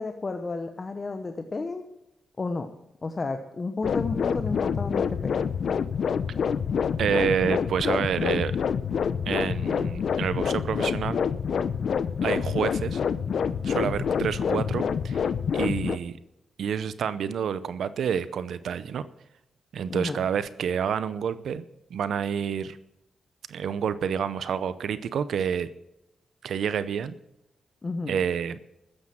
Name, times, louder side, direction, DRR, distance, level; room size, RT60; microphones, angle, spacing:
voice 1, 0.0-1.8 2.4-2.7 3.0-5.4 19.9-20.2 27.8-28.2, left 3 dB, 35° left, 7 dB, 1.0 m, -32 dB
sound 1, 3.8-16.0, left 7 dB, 65° left, 0.7 m, -27 dB
voice 2, 7.0-8.5 9.3-11.2 12.2-13.0 13.6-16.2 16.6-19.1 19.7-21.6 21.9-22.8 23.5-25.7 26.4-27.1 28.1-28.6, right 7 dB, 80° right, 15 dB, 0.7 m, -28 dB
13.5 x 9.8 x 7.5 m, 0.87 s
cardioid pair, 105°, 0 cm